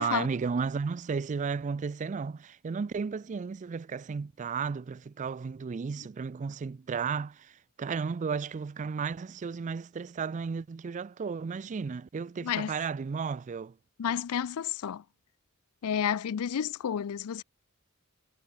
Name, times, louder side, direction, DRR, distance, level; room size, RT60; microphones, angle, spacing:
voice 1, 0.0-13.7, right 5 dB, 35° right, 0.3 m, -34 dB
voice 2, 12.4-12.7 14.0-15.0 15.8-17.4, left 8 dB, 80° left, 0.4 m, -31 dB
head